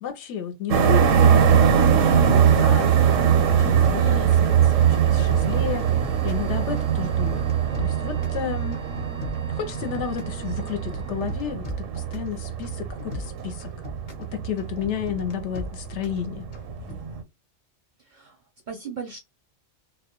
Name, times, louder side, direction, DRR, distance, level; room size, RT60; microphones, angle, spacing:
voice 1, 0.0-5.9 6.2-7.5 7.8-8.8 9.5-13.7 14.2-16.5, left 8 dB, 70° left, 0.8 m, -32 dB
sound 1, 0.7-17.2, right 8 dB, 85° right, 1.0 m, -21 dB
sound 2, 1.4-2.6 2.9-4.5 4.8-6.5 6.8-8.4 8.7-10.4 10.7-12.3 12.6-14.3 14.6-16.2 16.5-17.0, left 1 dB, 45° left, 0.6 m, -38 dB
sound 3, 1.5-11.5, right 2 dB, 10° right, 0.4 m, -47 dB
voice 2, 16.8-17.2 18.0-18.4 18.7-19.2, right 5 dB, 55° right, 0.6 m, -38 dB
2.2 x 2.1 x 2.8 m
omnidirectional pair, 1.3 m